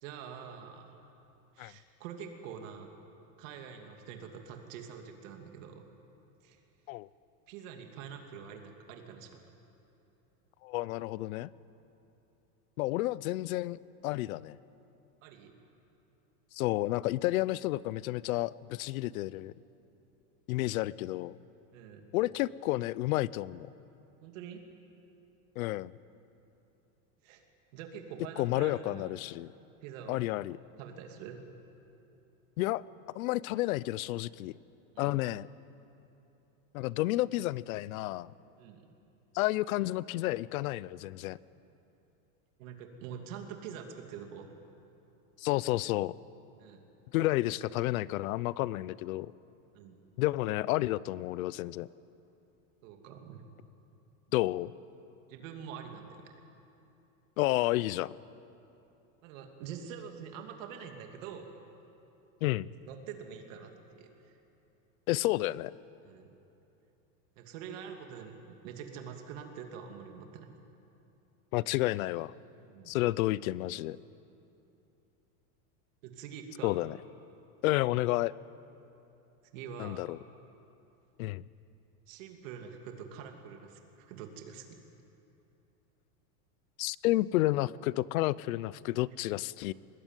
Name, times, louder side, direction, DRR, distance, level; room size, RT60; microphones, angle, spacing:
voice 1, 0.0-1.0 1.5-2.9 3.4-5.9 6.4-6.6 7.5-9.4 15.2-15.6 21.7-22.1 24.2-24.6 27.2-27.4 27.7-29.1 29.8-30.2 30.8-31.4 34.9-35.2 38.6-38.9 42.6-44.5 46.6-46.8 49.7-49.9 52.8-53.4 55.3-56.3 59.2-61.5 62.9-64.4 66.0-66.3 67.4-70.5 72.6-72.9 76.0-76.8 79.5-80.1 82.1-84.8, right 7 dB, 60° right, 4 dB, 2.7 m, -45 dB
voice 2, 10.6-11.5 12.8-14.6 16.5-19.5 20.5-21.3 22.1-23.7 25.6-25.9 28.4-29.5 30.1-30.6 32.6-32.8 33.1-34.5 35.0-35.5 36.7-38.3 39.3-41.4 45.4-46.1 47.1-49.3 50.2-51.9 54.3-54.7 57.4-58.1 62.4-62.7 65.1-65.7 71.5-72.3 72.9-74.0 76.6-76.9 77.6-78.3 79.8-80.2 81.2-81.4 86.8-89.7, left 17 dB, 70° left, 20 dB, 0.7 m, -31 dB
24.0 x 21.0 x 9.1 m, 2.8 s
supercardioid pair, 155°, 44 cm